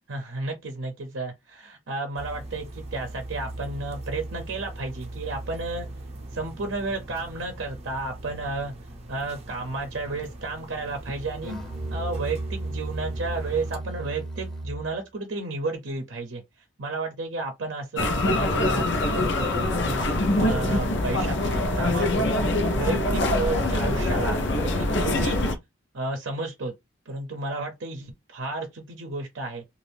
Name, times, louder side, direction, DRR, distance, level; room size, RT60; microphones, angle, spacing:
voice 1, 0.1-5.9 6.3-8.7 9.1-11.5 11.9-16.4 16.8-18.9 19.1-25.4 25.9-26.7 27.1-29.6, right 3 dB, 70° right, 0.7 m, -32 dB
sound 1, 2.2-13.8, right 1 dB, 30° right, 0.7 m, -40 dB
Musical instrument, 11.4-15.0, right 2 dB, 5° left, 0.7 m, -34 dB
sound 2, 18.0-25.5, left 1 dB, 60° left, 0.6 m, -24 dB
2.6 x 2.4 x 3.3 m
head